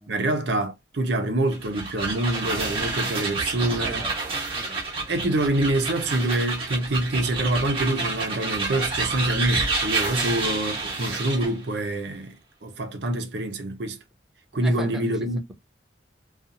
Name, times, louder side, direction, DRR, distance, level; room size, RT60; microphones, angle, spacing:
voice 1, 0.1-4.1 5.1-14.0 14.5-15.5, right 1 dB, 70° right, 0.6 m, -26 dB
sound 1, 1.5-11.6, right 3 dB, 30° right, 0.9 m, -29 dB
voice 2, 3.8-5.1 10.1-10.3 14.6-15.1, equal, ahead, 0.3 m, -40 dB
2.7 x 2.4 x 2.5 m
head